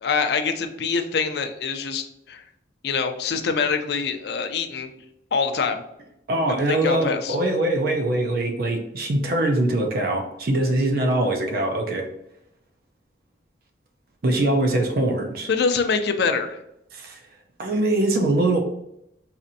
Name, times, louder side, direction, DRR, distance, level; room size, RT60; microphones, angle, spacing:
voice 1, 0.0-2.4 2.8-4.9 5.3-5.8 6.7-7.4 15.5-16.6, left 5 dB, 60° left, 7 dB, 0.4 m, -24 dB
voice 2, 6.3-12.0 14.2-15.5 16.9-17.2 17.6-18.6, right 1 dB, 50° right, 3 dB, 0.5 m, -22 dB
4.2 x 2.5 x 2.6 m, 0.80 s
head